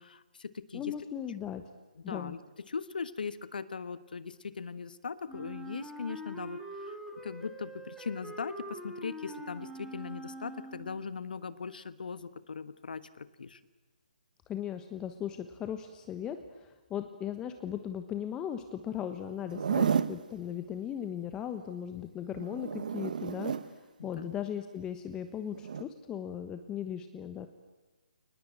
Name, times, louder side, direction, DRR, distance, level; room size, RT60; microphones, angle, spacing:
voice 1, 0.0-0.9 2.1-2.4 2.7-13.6 24.0-24.3, left 5 dB, 70° left, 14 dB, 1.4 m, -40 dB
voice 2, 0.7-1.6 2.0-2.3 14.5-27.5, left 9 dB, 15° left, 9 dB, 1.2 m, -38 dB
Wind instrument woodwind instrument, 5.3-11.1, right 1 dB, ahead, 2.5 m, -44 dB
Zipper (clothing), 19.4-20.2 22.3-23.7 25.6-25.8, right 7 dB, 55° right, 1.2 m, -31 dB
28.5 x 19.5 x 8.9 m, 1.2 s
hypercardioid pair, 150°, 5 cm